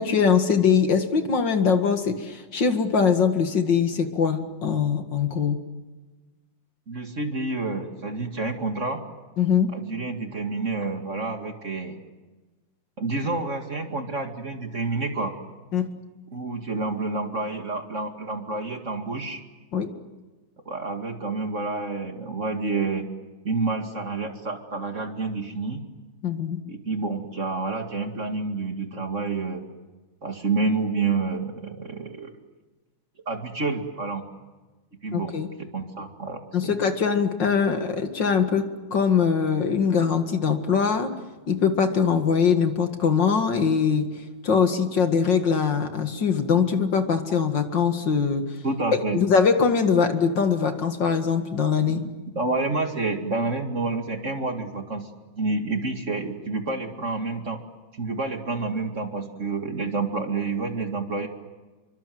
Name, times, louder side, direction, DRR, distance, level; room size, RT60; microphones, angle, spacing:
voice 1, 0.0-5.6 9.4-9.7 15.7-15.9 19.7-19.9 26.2-26.6 35.1-35.5 36.5-38.6 38.9-41.1 41.5-44.1 44.4-48.4 49.1-52.0, left 6 dB, 60° left, 7 dB, 2.6 m, -22 dB
voice 2, 6.9-9.0 9.7-12.0 13.0-15.4 16.3-19.4 20.7-23.1 23.4-25.8 26.7-29.6 30.2-32.4 33.3-34.2 35.0-35.3 35.7-36.7 48.6-49.2 51.9-52.0 52.3-55.1 55.4-57.6 58.0-61.3, right 3 dB, 35° right, 5 dB, 2.4 m, -29 dB
28.5 x 24.0 x 7.8 m, 1.2 s
omnidirectional pair, 2.2 m